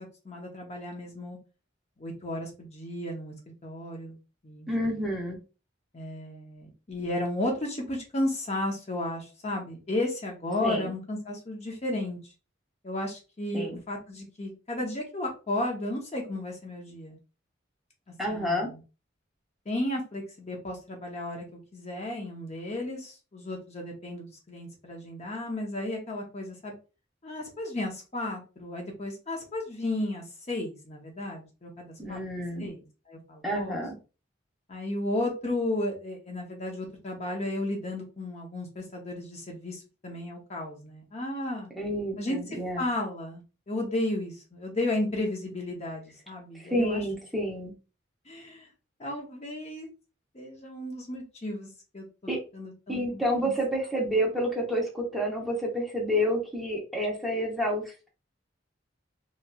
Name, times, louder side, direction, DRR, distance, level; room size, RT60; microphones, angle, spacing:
voice 1, 0.0-1.4 2.0-4.2 4.4-4.9 5.9-12.2 12.8-17.2 18.3-18.8 19.7-26.7 27.2-32.2 32.6-33.8 34.7-41.7 42.2-42.4 42.8-47.0 48.3-48.7 49.0-49.9 50.3-51.7 51.9-52.1 52.5-53.2, left 1 dB, 35° left, 0 dB, 0.8 m, -34 dB
voice 2, 4.7-5.4 10.6-10.9 13.5-13.8 18.2-18.7 32.0-32.7 33.4-34.0 41.8-42.8 46.5-47.7 52.3-52.4 52.9-58.1, equal, ahead, -2 dB, 0.8 m, -29 dB
3.1 x 2.8 x 2.3 m, 0.32 s
head